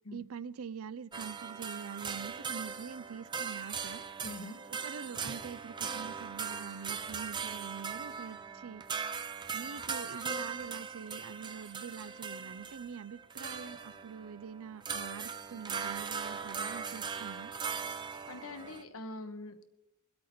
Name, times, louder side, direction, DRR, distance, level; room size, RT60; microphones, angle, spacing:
voice 1, 0.1-4.0 4.7-8.8 9.5-17.5, right 6 dB, 80° right, 0.5 m, -45 dB
sound 1, 1.1-18.8, right 6 dB, 20° right, 0.5 m, -39 dB
voice 2, 4.2-4.6 17.9-19.7, left 2 dB, 70° left, 1.1 m, -44 dB
22.0 x 8.6 x 4.3 m
head